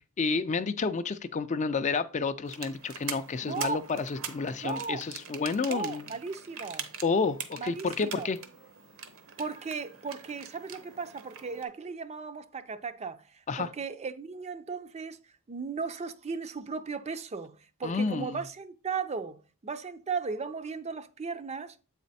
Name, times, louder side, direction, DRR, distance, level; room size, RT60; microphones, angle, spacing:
voice 1, 0.2-6.0 7.0-8.4 13.5-13.7 17.8-18.4, left 4 dB, 35° left, 0.4 m, -30 dB
sound 1, 2.5-11.6, right 7 dB, 65° right, 0.9 m, -43 dB
voice 2, 3.4-3.8 4.6-5.0 5.6-6.9 7.5-8.3 9.4-13.2 13.6-15.2 15.5-21.7, right 5 dB, 30° right, 0.5 m, -36 dB
8.0 x 4.2 x 4.1 m
head